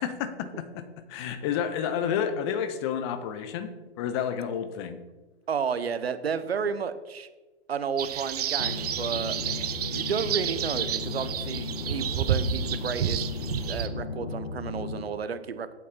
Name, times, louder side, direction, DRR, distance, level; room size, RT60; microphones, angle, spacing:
voice 1, 0.0-5.0, left 8 dB, 25° left, 10 dB, 0.7 m, -30 dB
voice 2, 5.5-7.3 7.7-9.4 9.9-13.3 13.7-15.7, right 6 dB, 65° right, 12 dB, 0.9 m, -32 dB
sound 1, 8.0-13.9, right 9 dB, 35° right, 0.6 m, -30 dB
sound 2, 8.6-15.0, left 3 dB, 65° left, 1.2 m, -35 dB
8.5 x 8.3 x 4.3 m, 1.2 s
figure-of-eight pair, 120°, 34 cm